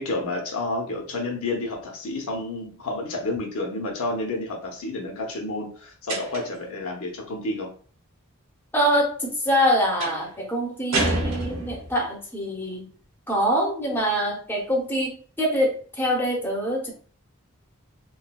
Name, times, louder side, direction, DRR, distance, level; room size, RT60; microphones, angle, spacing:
voice 1, 0.0-7.7, left 2 dB, 70° left, 1 dB, 0.8 m, -30 dB
sound 1, 6.1-6.7 10.0-10.3 10.9-12.0, right 1 dB, 65° right, 1.4 m, -27 dB
voice 2, 8.7-12.9 13.3-16.9, equal, 10° left, -1 dB, 0.7 m, -24 dB
3.8 x 2.2 x 2.2 m, 0.43 s
head